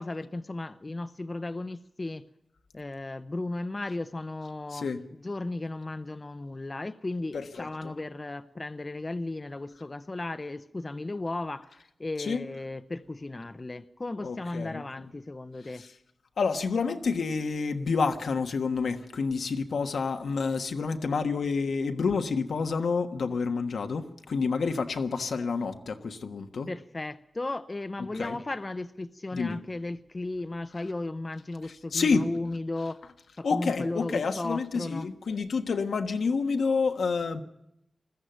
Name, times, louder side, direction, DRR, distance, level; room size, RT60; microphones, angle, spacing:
voice 1, 0.0-2.2 2.7-4.9 5.2-15.8 26.7-33.0 33.4-35.1, left 2 dB, 35° left, 0.7 m, -35 dB
voice 2, 4.7-5.0 7.3-7.9 12.2-12.5 14.2-15.1 15.7-15.9 16.4-26.7 28.0-28.4 29.3-29.6 31.7-32.3 33.4-37.4, left 4 dB, 90° left, 1.4 m, -29 dB
21.0 x 14.5 x 9.2 m
wide cardioid pair, 70°, 0 cm